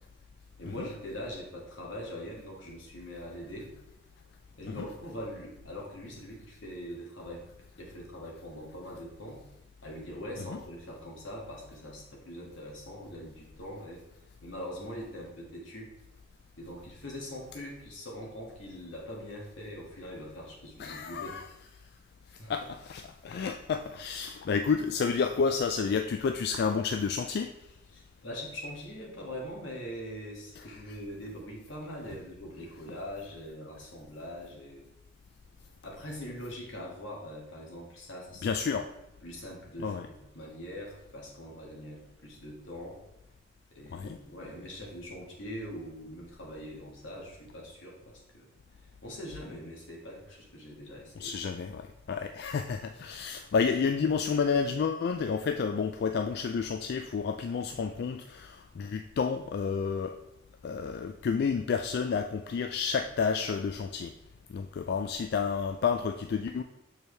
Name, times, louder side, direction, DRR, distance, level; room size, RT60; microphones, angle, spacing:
voice 1, 0.6-3.7 4.6-7.4 7.8-9.4 9.8-14.0 14.4-15.9 16.6-21.4 22.4-22.5 27.9-34.8 35.8-38.5 39.2-43.0 43.7-48.5 49.0-51.4, equal, 85° left, -2 dB, 1.8 m, -42 dB
voice 2, 20.8-21.5 22.5-27.5 30.6-30.7 38.4-38.9 39.8-40.1 43.9-44.2 51.2-60.2 60.6-64.1 64.5-66.6, left 5 dB, 55° left, 6 dB, 0.3 m, -30 dB
6.8 x 4.5 x 3.3 m, 0.89 s
head